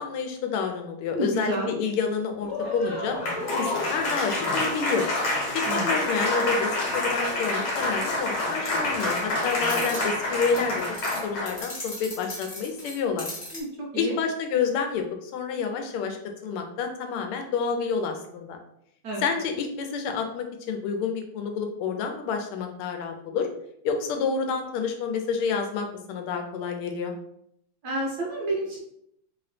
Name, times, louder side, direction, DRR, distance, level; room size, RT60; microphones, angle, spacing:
voice 1, 0.0-3.2 3.5-5.1 5.5-13.3 13.9-18.6 19.2-23.5 23.8-27.1, left 5 dB, 90° left, 5 dB, 1.5 m, -29 dB
voice 2, 1.1-1.7 5.7-5.9 13.5-13.7 13.9-14.1 19.0-19.2 27.8-28.8, right 2 dB, 65° right, -3 dB, 1.1 m, -29 dB
Applause, 2.4-11.6, left 1 dB, 70° left, 1.9 m, -27 dB
sound 1, 8.8-10.1 10.4-13.6, left 1 dB, 40° left, 0.5 m, -38 dB
3.3 x 2.9 x 3.2 m, 0.74 s
omnidirectional pair, 2.4 m